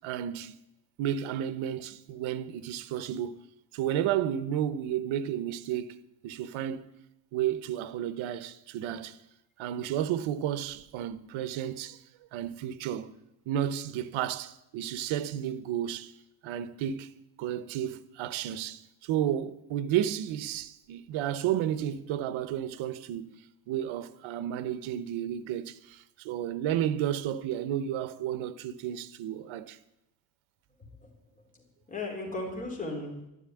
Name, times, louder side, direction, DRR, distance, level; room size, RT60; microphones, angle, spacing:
voice 1, 0.0-0.6 1.0-3.4 3.7-6.9 7.3-9.2 9.6-12.0 12.3-13.1 13.5-16.1 16.4-17.1 17.4-23.4 23.7-29.8, right 10 dB, 80° right, 1.1 m, -32 dB
voice 2, 31.4-33.3, left 2 dB, 15° left, 3.9 m, -37 dB
11.5 x 11.5 x 9.9 m
cardioid pair, 155°, 48 cm